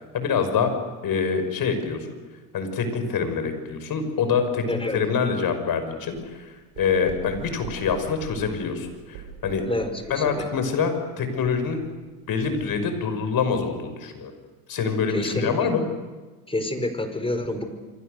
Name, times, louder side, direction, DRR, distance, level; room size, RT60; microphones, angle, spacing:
voice 1, 0.1-0.7 1.0-2.1 2.5-4.6 4.9-9.6 10.1-11.8 12.3-14.3 14.7-15.8, left 6 dB, 50° left, 8 dB, 6.0 m, -25 dB
voice 2, 4.7-5.0 9.7-10.5 15.1-15.7 16.5-17.6, left 1 dB, 10° left, 8 dB, 4.9 m, -28 dB
sound 1, 6.0-12.1 12.4-12.8, right 8 dB, 80° right, 5.7 m, -43 dB
28.0 x 24.5 x 6.8 m, 1.3 s
supercardioid pair, 85°, 46 cm